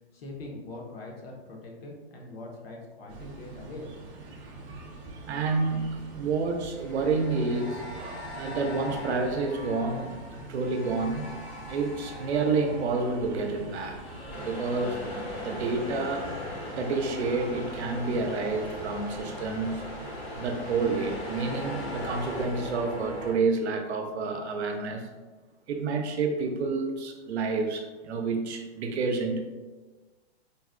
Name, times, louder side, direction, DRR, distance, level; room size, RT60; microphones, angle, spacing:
voice 1, 0.1-3.9, left 2 dB, 60° left, -1 dB, 0.9 m, -42 dB
sound 1, 3.1-22.7, right 2 dB, 30° right, 0.6 m, -45 dB
sound 2, 4.0-4.2 6.6-19.0 19.3-19.5 20.2-23.3, left 1 dB, 90° left, 1.3 m, -42 dB
voice 2, 5.3-11.3 11.7-14.0 14.3-16.3 16.7-19.8 20.3-25.1 25.7-29.4, right 4 dB, 80° right, 4 dB, 0.6 m, -29 dB
sound 3, 14.3-22.4, left 1 dB, 20° left, 0.5 m, -40 dB
3.9 x 2.0 x 2.4 m, 1.2 s
hypercardioid pair, 145°, 33 cm